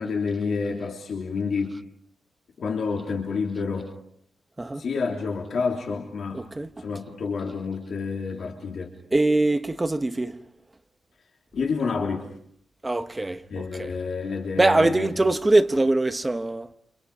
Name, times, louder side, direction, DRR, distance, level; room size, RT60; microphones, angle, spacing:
voice 1, 0.0-1.8 2.6-3.9 4.8-6.4 6.8-8.9 11.5-12.3 13.5-15.3, left 5 dB, 60° left, 3.3 m, -29 dB
voice 2, 6.3-6.9 9.1-10.4 12.8-13.9 14.6-16.7, right 2 dB, 15° right, 1.0 m, -23 dB
29.0 x 28.0 x 5.0 m
wide cardioid pair, 140°, 0 cm